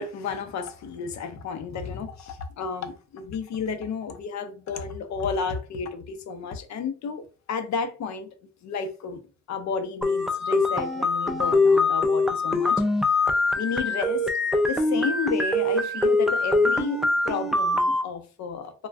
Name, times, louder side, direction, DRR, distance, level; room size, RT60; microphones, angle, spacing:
voice 1, 0.0-8.3 8.6-9.2 9.5-12.8 13.6-14.3 14.7-18.9, left 5 dB, 65° left, 0.6 m, -32 dB
sound 1, 10.0-18.0, left 2 dB, ahead, 0.3 m, -23 dB
2.4 x 2.2 x 3.3 m
cardioid pair, 90°, 30 cm